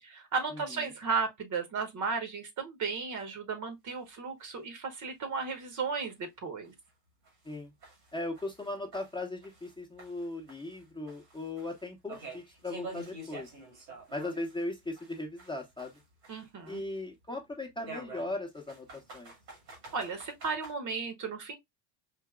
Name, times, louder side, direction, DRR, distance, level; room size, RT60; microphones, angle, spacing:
voice 1, 0.0-6.7 16.3-16.8 19.9-21.6, right 5 dB, 35° right, 1.1 m, -34 dB
voice 2, 0.5-0.8 7.4-7.7 8.1-13.5 14.1-15.9 16.7-19.3, left 2 dB, 10° left, 1.0 m, -38 dB
sound 1, 3.9-4.0 4.4-4.5 4.9-5.0 5.5-5.6 6.1-6.2 6.6-6.7 7.2-9.7 10.0-14.6 14.9-17.0 17.8-20.7, right 3 dB, 80° right, 2.1 m, -48 dB
4.9 x 2.8 x 2.3 m
hypercardioid pair, 70°, 50 cm